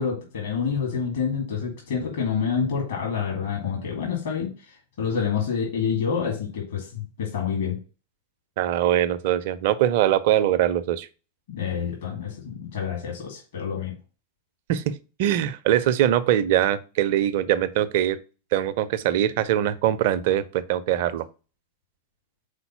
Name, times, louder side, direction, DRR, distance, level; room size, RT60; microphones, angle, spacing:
voice 1, 0.0-7.8 11.5-13.9, left 6 dB, 60° left, 2.2 m, -28 dB
voice 2, 8.6-11.1 14.7-18.2 18.5-21.2, right 11 dB, 50° right, 0.5 m, -22 dB
5.1 x 4.1 x 5.6 m
figure-of-eight pair, 90°, 0 cm